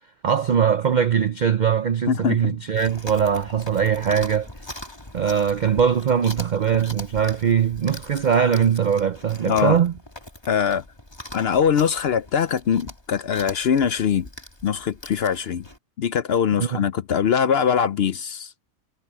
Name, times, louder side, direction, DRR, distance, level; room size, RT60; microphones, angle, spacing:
voice 1, 0.2-4.5 5.1-9.9 16.6-16.8, right 7 dB, 60° right, 0.4 m, -21 dB
voice 2, 2.1-2.6 9.5-9.8 10.5-10.8 11.3-14.3 14.6-15.6 16.0-18.5, left 7 dB, 60° left, 0.7 m, -22 dB
Chewing mastication, 2.7-15.8, left 1 dB, 20° left, 2.1 m, -41 dB
omnidirectional pair, 1.4 m